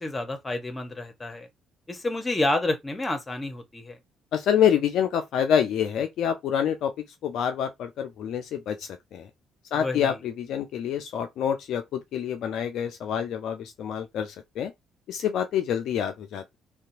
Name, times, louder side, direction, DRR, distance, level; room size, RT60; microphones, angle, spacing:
voice 1, 0.0-1.5 1.9-4.0 9.8-10.2, left 2 dB, 25° left, 0.9 m, -29 dB
voice 2, 4.3-6.9 7.2-9.3 9.7-14.7 15.1-16.5, left 8 dB, 60° left, 0.3 m, -27 dB
2.7 x 2.2 x 2.6 m
figure-of-eight pair, 45°, 0 cm